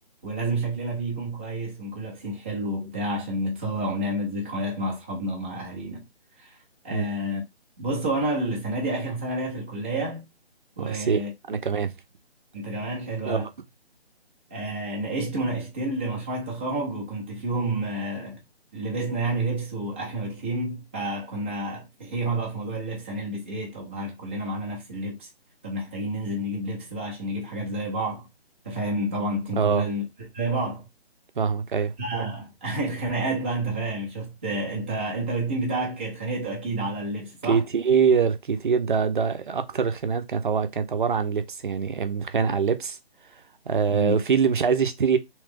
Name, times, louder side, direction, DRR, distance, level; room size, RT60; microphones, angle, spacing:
voice 1, 0.2-6.0 6.4-6.6 6.8-7.4 7.8-10.3 10.8-11.6 12.5-13.5 14.5-18.4 18.7-25.3 25.6-28.3 28.6-30.0 30.3-30.8 32.0-37.6 42.4-42.5 43.9-44.2, right 1 dB, 10° right, 0.6 m, -29 dB
voice 2, 10.8-11.2 11.5-11.9 13.3-13.5 29.6-29.9 31.4-31.9 37.5-43.0 43.7-45.2, right 6 dB, 50° right, 0.7 m, -24 dB
3.3 x 3.1 x 3.4 m
figure-of-eight pair, 155°, 32 cm